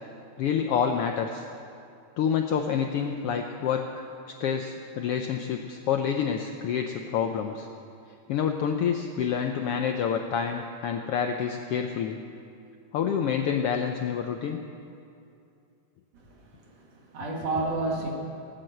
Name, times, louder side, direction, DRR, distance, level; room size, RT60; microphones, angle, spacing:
voice 1, 0.4-1.4 2.2-4.0 4.4-7.7 8.3-12.2 12.9-14.6, left 7 dB, 75° left, 4 dB, 1.4 m, -28 dB
voice 2, 16.1-18.1, right 2 dB, 60° right, 0 dB, 2.9 m, -31 dB
18.0 x 9.6 x 7.8 m, 2.5 s
omnidirectional pair, 3.3 m